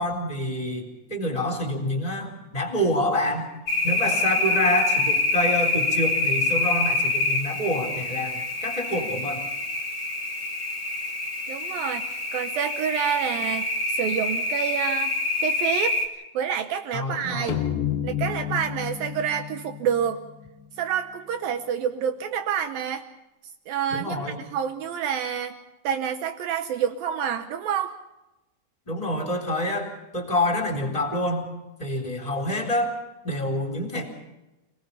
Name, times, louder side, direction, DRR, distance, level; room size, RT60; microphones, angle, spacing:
voice 1, 0.0-3.5 3.8-9.5 16.9-17.6 23.9-24.4 28.9-31.5 31.8-32.9 33.2-34.1, left 1 dB, 10° left, 3 dB, 3.3 m, -27 dB
sound 1, 3.7-16.0, left 3 dB, 35° left, 2.4 m, -26 dB
voice 2, 11.5-15.1 15.4-16.0 16.3-17.6 18.0-20.2 20.8-23.0 23.7-25.6 25.8-27.9, right 8 dB, 75° right, 8 dB, 2.2 m, -28 dB
sound 2, 17.5-21.0, left 10 dB, 65° left, 2.5 m, -31 dB
28.5 x 19.5 x 5.6 m, 0.98 s
omnidirectional pair, 5.0 m